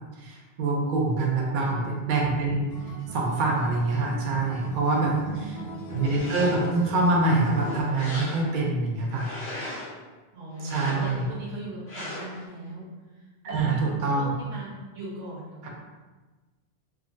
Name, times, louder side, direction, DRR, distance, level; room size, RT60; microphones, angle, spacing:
voice 1, 0.2-2.7 3.1-5.1 5.9-9.3 10.6-11.3 13.4-14.3 15.6-15.7, right 3 dB, 60° right, -2 dB, 0.6 m, -25 dB
voice 2, 1.4-1.9 4.9-5.8 10.3-12.9 13.1-15.7, right 2 dB, 90° right, -5 dB, 1.1 m, -40 dB
Acoustic guitar, 2.7-7.8, equal, 60° left, 0.8 m, -39 dB
sound 1, 5.9-6.8 7.3-8.7 9.1-10.0 10.5-11.3 11.9-12.4, left 1 dB, 90° left, 1.1 m, -38 dB
3.6 x 2.0 x 2.4 m, 1.2 s
omnidirectional pair, 1.0 m